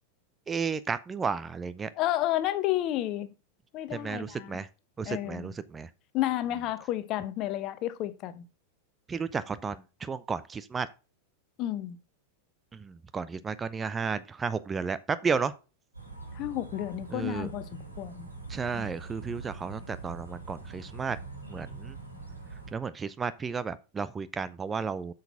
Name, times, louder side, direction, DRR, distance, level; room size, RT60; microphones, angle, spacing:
voice 1, 0.5-1.9 3.9-4.7 5.0-5.9 9.1-10.9 12.7-15.5 17.1-17.5 18.5-21.2 21.5-22.0 22.5-25.1, right 5 dB, 15° right, 0.6 m, -33 dB
voice 2, 2.0-3.3 3.7-4.6 5.0-5.5 6.1-8.5 11.6-12.0 16.3-18.3 18.7-18.9, left 14 dB, 40° left, 1.0 m, -31 dB
sound 1, 15.9-22.7, right 3 dB, 85° right, 3.8 m, -43 dB
8.0 x 6.5 x 5.6 m
figure-of-eight pair, 90°, 0 cm